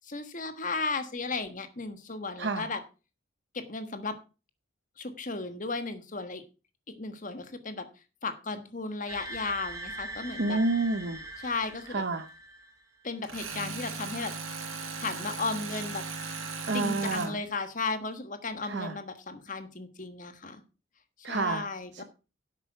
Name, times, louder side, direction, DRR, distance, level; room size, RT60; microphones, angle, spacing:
voice 1, 0.0-2.8 3.5-4.2 5.0-6.4 7.0-7.9 8.2-10.6 11.4-12.0 13.0-14.3 15.0-16.0 16.7-20.6 21.2-22.0, left 3 dB, 40° left, 1.4 m, -35 dB
sound 1, 9.1-12.9, right 1 dB, 15° right, 1.7 m, -41 dB
voice 2, 10.4-11.2 11.9-12.2 16.7-17.4 18.7-18.9 21.2-21.6 22.0-22.1, right 3 dB, 55° right, 0.8 m, -29 dB
Tools, 13.2-17.3, right 4 dB, 85° right, 4.6 m, -37 dB
11.0 x 8.1 x 4.6 m
head